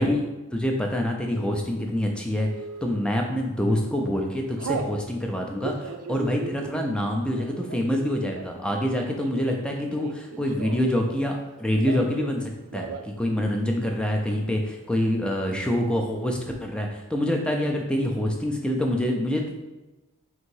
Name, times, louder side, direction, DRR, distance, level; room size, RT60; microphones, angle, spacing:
voice 1, 0.0-2.5 2.8-19.6, left 1 dB, 5° left, 1 dB, 0.4 m, -26 dB
Telephone, 2.4-2.9 3.5-3.8 4.1-4.9 5.5-11.0 11.3-12.4 12.7-13.1 13.4-13.5 13.8-14.4, right 5 dB, 80° right, 0.4 m, -37 dB
3.8 x 2.7 x 4.6 m, 1.1 s
head